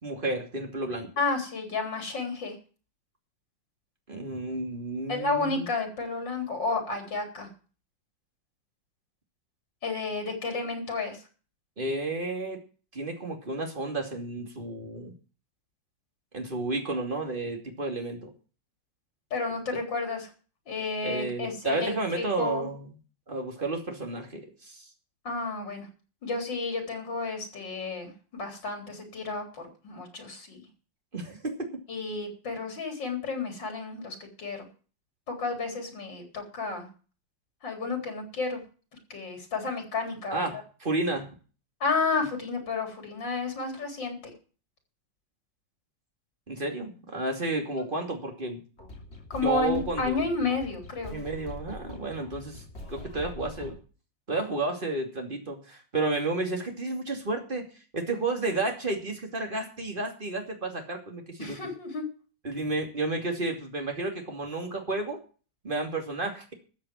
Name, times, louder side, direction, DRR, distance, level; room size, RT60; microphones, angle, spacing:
voice 1, 0.0-1.1 4.1-5.7 11.8-12.6 12.9-15.1 16.3-18.3 21.0-22.9 23.3-24.9 31.1-31.8 40.3-41.3 46.5-48.6 49.4-50.3 51.1-53.8 54.3-57.7 57.9-61.6 62.4-65.2 65.6-66.5, right 2 dB, 30° right, 3 dB, 2.8 m, -31 dB
voice 2, 1.2-2.6 5.1-7.5 9.8-11.2 19.3-20.3 20.7-22.7 25.2-25.9 26.2-30.6 31.9-34.7 35.3-36.9 37.6-38.6 39.1-40.4 41.8-44.3 49.3-51.2 61.4-62.1, left 3 dB, 90° left, 4 dB, 4.5 m, -31 dB
sound 1, 48.8-53.8, left 1 dB, 35° left, 3.7 m, -43 dB
14.0 x 7.4 x 7.6 m, 0.38 s
omnidirectional pair, 1.9 m